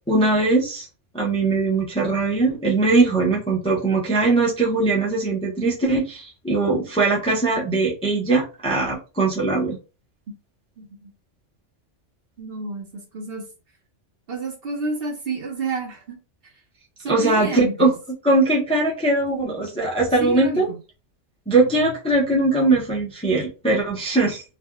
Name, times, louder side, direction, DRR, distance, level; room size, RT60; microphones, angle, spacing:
voice 1, 0.1-0.9 1.1-9.8 17.1-17.9 18.2-20.7 21.5-24.4, right 2 dB, 5° left, -4 dB, 0.6 m, -20 dB
voice 2, 10.8-11.1 12.4-12.9 13.1-13.4 14.3-16.2 17.0-17.9 20.2-20.8, right 3 dB, 55° right, 0 dB, 1.0 m, -30 dB
3.4 x 2.4 x 2.2 m, 0.32 s
omnidirectional pair, 1.3 m